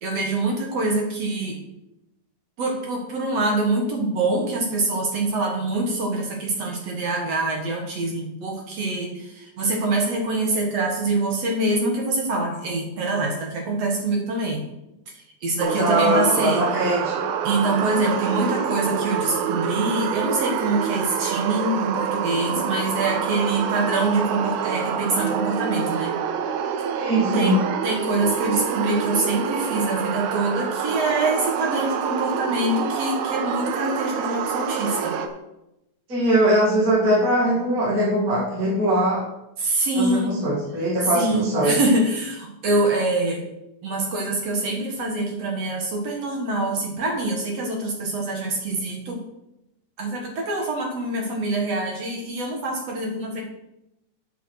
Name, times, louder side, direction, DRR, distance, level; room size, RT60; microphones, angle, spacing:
voice 1, 0.0-1.6 2.6-14.7 15.4-16.6 17.4-26.2 27.3-27.6 27.8-35.2 39.6-40.4 41.1-43.4 43.8-49.3 50.0-53.4, right 2 dB, 55° right, 0 dB, 2.2 m, -25 dB
voice 2, 15.6-17.3 26.9-27.6 36.1-39.2 39.9-41.7, right 1 dB, 25° right, -6 dB, 2.4 m, -21 dB
sound 1, 15.6-35.3, right 7 dB, 85° right, 2.6 m, -27 dB
8.4 x 6.9 x 6.5 m, 0.90 s
omnidirectional pair, 4.3 m